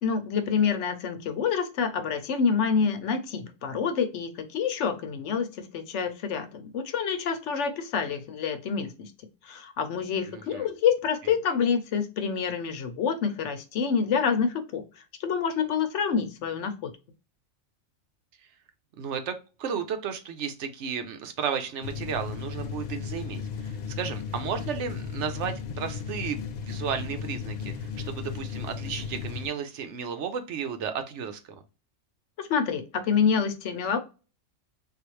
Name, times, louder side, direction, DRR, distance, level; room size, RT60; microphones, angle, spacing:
voice 1, 0.0-9.1 9.4-16.9 32.4-34.0, left 6 dB, 70° left, 8 dB, 0.9 m, -27 dB
voice 2, 10.3-10.7 19.0-31.4, right 7 dB, 70° right, 7 dB, 0.9 m, -33 dB
sound 1, 21.8-29.5, left 6 dB, 90° left, 0.3 m, -35 dB
3.6 x 2.4 x 3.1 m, 0.31 s
omnidirectional pair, 1.3 m